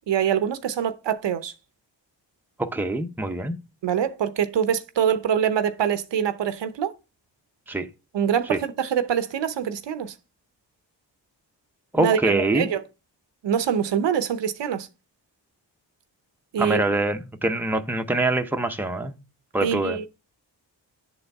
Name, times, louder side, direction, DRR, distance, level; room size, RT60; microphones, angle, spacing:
voice 1, 0.1-1.5 3.8-6.9 8.1-10.1 12.0-12.8 13.4-14.9 16.5-16.8 19.6-20.1, right 8 dB, 70° right, 0.8 m, -24 dB
voice 2, 2.6-3.6 7.7-7.9 8.5-8.6 11.9-12.7 16.6-19.1 19.5-20.0, right 2 dB, 5° right, 0.8 m, -24 dB
9.7 x 4.0 x 3.4 m
cardioid pair, 55°, 44 cm